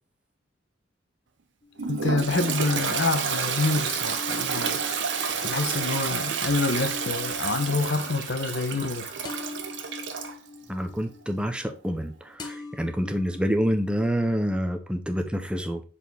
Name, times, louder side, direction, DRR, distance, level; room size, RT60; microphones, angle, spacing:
sound 1, 1.6-2.5 4.1-12.1 12.4-14.5, left 4 dB, 20° left, 0.9 m, -44 dB
Toilet flush, 1.8-10.4, right 6 dB, 70° right, 0.8 m, -30 dB
voice 1, 1.9-9.2, left 3 dB, 70° left, 0.9 m, -27 dB
voice 2, 10.7-15.8, equal, 5° right, 0.6 m, -27 dB
7.0 x 4.2 x 3.5 m
head